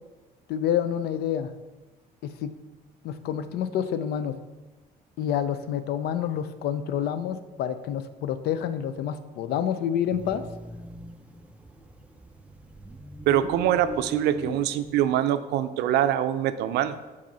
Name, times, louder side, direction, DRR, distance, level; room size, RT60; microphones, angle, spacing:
voice 1, 0.5-1.5 2.2-2.5 3.0-4.4 5.2-10.4, left 9 dB, 70° left, 11 dB, 0.5 m, -28 dB
sound 1, 10.1-15.1, right 2 dB, 5° right, 0.4 m, -40 dB
voice 2, 13.3-17.0, right 11 dB, 80° right, 12 dB, 0.4 m, -24 dB
5.1 x 4.1 x 5.5 m, 1.2 s
cardioid pair, 110°, 17 cm